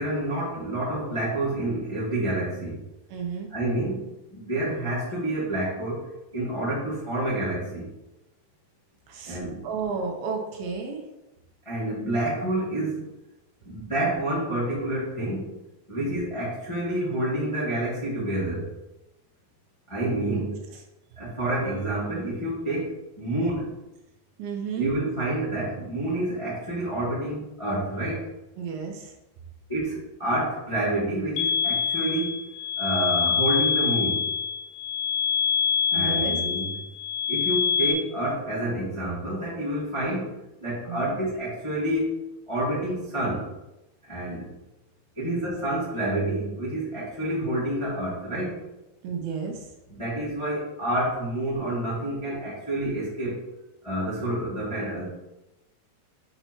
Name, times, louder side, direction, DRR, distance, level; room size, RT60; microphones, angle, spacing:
voice 1, 0.0-2.8 3.5-4.0 4.3-6.1 6.3-7.9 9.2-9.7 11.6-13.0 13.6-15.5 15.9-18.7 19.9-20.6 21.2-23.8 24.8-28.3 29.7-32.3 32.8-34.2 35.9-36.7 37.3-42.1 42.5-43.5 44.1-44.5 45.2-48.6 49.9-53.4 53.8-55.1, right 1 dB, 35° left, -8 dB, 0.4 m, -28 dB
voice 2, 3.1-3.5 9.1-9.4 9.6-11.0 16.0-16.2 24.4-24.9 28.6-29.1 35.9-36.4 40.9-41.2 45.2-45.4 49.0-49.7, right 5 dB, 80° right, 2 dB, 2.5 m, -32 dB
sound 1, 31.4-37.9, left 7 dB, 80° left, 2.4 m, -25 dB
7.8 x 2.9 x 4.4 m, 0.95 s
omnidirectional pair, 4.5 m